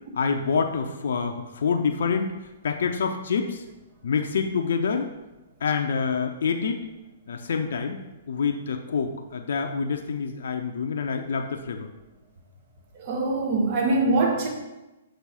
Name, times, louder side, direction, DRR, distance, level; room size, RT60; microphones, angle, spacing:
voice 1, 0.1-2.4 2.6-3.6 4.0-5.1 5.6-6.8 7.3-11.9, left 5 dB, 65° left, 4 dB, 0.6 m, -27 dB
voice 2, 13.0-14.5, right 2 dB, 45° right, 0 dB, 1.3 m, -23 dB
6.1 x 3.4 x 5.6 m, 1.0 s
hypercardioid pair, 120°, 0 cm